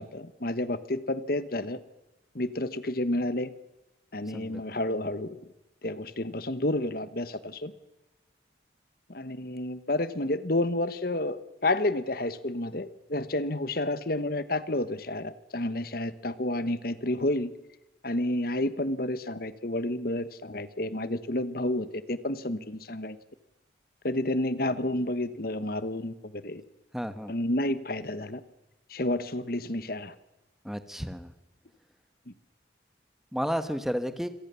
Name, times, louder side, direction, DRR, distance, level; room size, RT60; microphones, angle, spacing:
voice 1, 0.0-1.8 2.3-3.5 4.1-5.4 5.8-7.7 9.1-17.5 18.0-23.2 24.0-26.6 27.3-28.4 28.9-30.1 32.3-32.4, left 1 dB, 50° left, 14 dB, 1.2 m, -30 dB
voice 2, 26.9-27.3 30.6-31.3 33.3-34.3, equal, ahead, 10 dB, 1.3 m, -32 dB
26.5 x 18.5 x 7.0 m, 1.0 s
head